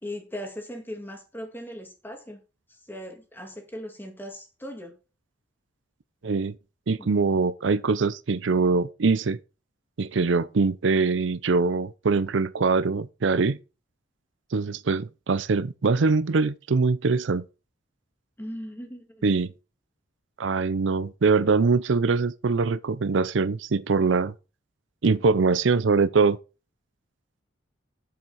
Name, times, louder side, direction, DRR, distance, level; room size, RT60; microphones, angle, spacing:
voice 1, 0.0-2.4 2.7-5.0 7.0-7.1 18.4-19.2, equal, 10° left, 2.1 m, -38 dB
voice 2, 6.2-6.6 6.9-9.4 10.0-13.6 14.5-17.4 19.2-19.5 20.4-24.3 25.0-26.4, right 4 dB, 75° right, 0.6 m, -23 dB
7.6 x 7.3 x 4.1 m
head